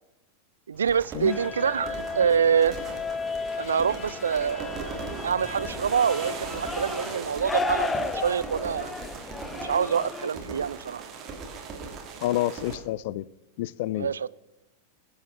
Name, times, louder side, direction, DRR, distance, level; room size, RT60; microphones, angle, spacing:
Bicycle, 0.7-8.3, left 2 dB, 30° left, 4.7 m, -51 dB
voice 1, 0.7-2.8 3.6-5.0 5.2-8.9 9.5-11.0 14.0-14.3, right 7 dB, 70° right, 20 dB, 0.3 m, -26 dB
sound 1, 0.9-12.8, right 5 dB, 30° right, 2.4 m, -39 dB
sound 2, 1.3-10.3, left 3 dB, 15° left, 0.7 m, -34 dB
voice 2, 12.2-13.2 13.6-14.3, left 15 dB, 50° left, 22 dB, 0.4 m, -29 dB
21.0 x 7.8 x 3.9 m, 0.90 s
figure-of-eight pair, 90°, 0 cm